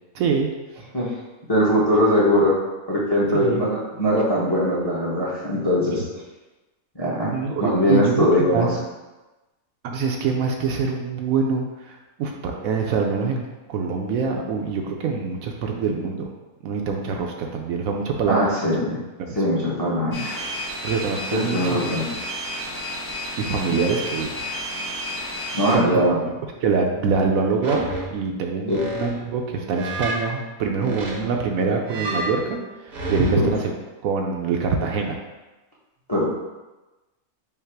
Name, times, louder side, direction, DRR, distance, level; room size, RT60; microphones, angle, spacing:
voice 1, 0.1-0.5 3.3-3.6 7.3-8.7 9.8-16.3 16.6-18.7 19.2-19.4 20.8-21.8 23.4-24.4 25.7-26.1 26.6-32.6 32.8-33.7 34.0-35.2, right 5 dB, 70° right, 2 dB, 1.0 m, -25 dB
voice 2, 1.5-2.5 2.9-6.0 6.9-7.3 7.6-8.7 18.3-19.0 19.4-20.4 21.3-22.1 25.5-26.2 28.7-28.8 33.2-33.5 36.1-36.2, equal, 25° left, -6 dB, 0.6 m, -21 dB
sound 1, 20.1-25.8, equal, 85° left, 1.7 m, -31 dB
sound 2, 27.6-28.3 28.7-29.1 29.7-30.2 30.8-33.4, right 1 dB, 40° right, 0.7 m, -30 dB
5.6 x 2.0 x 4.5 m, 1.1 s
omnidirectional pair, 1.6 m